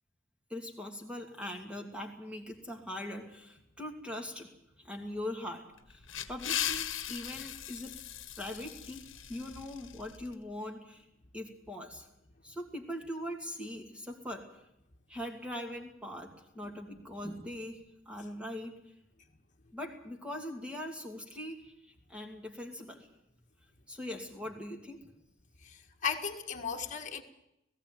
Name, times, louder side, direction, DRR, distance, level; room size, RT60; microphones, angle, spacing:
voice 1, 0.5-4.5 4.8-8.0 8.4-11.0 11.3-12.1 12.4-14.6 15.1-18.9 19.7-23.1 23.9-25.1, left 1 dB, 5° right, 2 dB, 2.6 m, -41 dB
sound 1, 5.8-10.3, left 10 dB, 65° left, 1.4 m, -38 dB
voice 2, 25.6-27.2, left 6 dB, 40° left, 2 dB, 1.8 m, -36 dB
18.0 x 16.5 x 9.0 m, 0.84 s
head